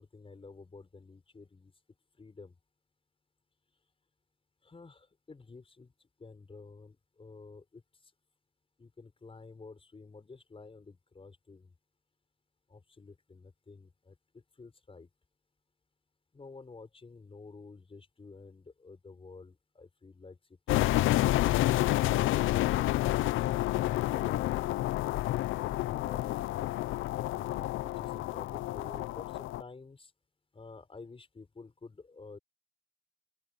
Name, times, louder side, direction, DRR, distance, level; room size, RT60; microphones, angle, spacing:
voice 1, 0.0-1.7 2.1-2.6 4.6-5.9 6.2-8.1 8.8-11.7 12.7-15.1 16.3-23.0 25.8-26.3 27.3-30.1 30.5-32.4, left 4 dB, 30° left, 5.2 m, -51 dB
sound 1, 20.7-29.6, left 16 dB, 85° left, 0.6 m, -29 dB
open air
cardioid pair, 90°, 20 cm